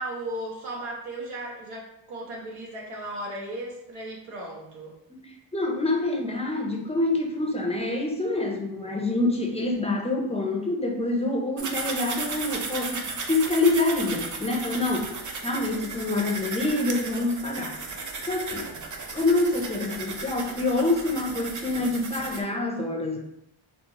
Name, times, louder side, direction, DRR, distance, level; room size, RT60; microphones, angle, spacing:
voice 1, 0.0-4.9, right 1 dB, 80° right, -3 dB, 1.1 m, -36 dB
voice 2, 5.1-15.1 15.4-17.8 18.2-18.7 19.1-23.2, left 2 dB, 15° left, 0 dB, 0.5 m, -26 dB
sound 1, 11.6-22.4, right 4 dB, 40° right, 0.4 m, -35 dB
4.3 x 2.0 x 2.8 m, 0.80 s
wide cardioid pair, 120°, 50 cm